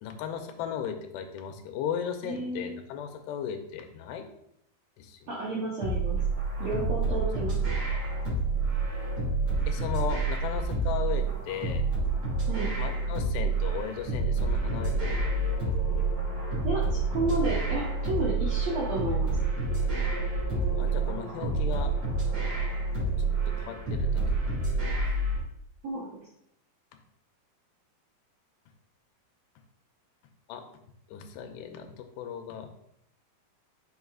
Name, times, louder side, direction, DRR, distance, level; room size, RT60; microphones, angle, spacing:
voice 1, 0.0-4.3 5.0-5.3 9.7-11.9 12.8-15.4 20.8-21.9 23.2-24.6 30.5-30.6 31.1-32.8, left 8 dB, 90° left, 5 dB, 2.7 m, -36 dB
voice 2, 2.2-2.8 5.3-6.2 6.6-7.6 12.5-12.7 16.6-19.3 25.8-26.3, right 2 dB, 70° right, -6 dB, 1.6 m, -32 dB
sound 1, 5.8-25.4, right 3 dB, 35° right, 3.0 m, -28 dB
sound 2, 14.6-24.3, left 1 dB, 40° left, 1.0 m, -43 dB
7.9 x 5.4 x 2.3 m, 0.74 s
omnidirectional pair, 4.6 m